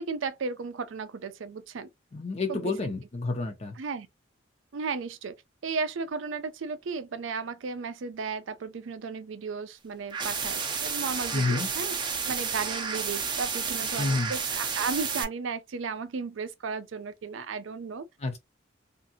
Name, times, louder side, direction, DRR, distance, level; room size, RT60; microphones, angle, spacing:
voice 1, 0.0-1.9 2.5-2.7 3.8-4.1 4.7-5.4 5.6-11.9 12.3-18.0, right 5 dB, 75° right, 0.5 m, -34 dB
voice 2, 2.1-3.8 11.3-11.7 14.0-14.3 18.2-18.4, left 3 dB, 35° left, 0.4 m, -29 dB
sound 1, 10.1-15.2, right 5 dB, 25° right, 0.5 m, -31 dB
2.6 x 2.5 x 2.7 m
head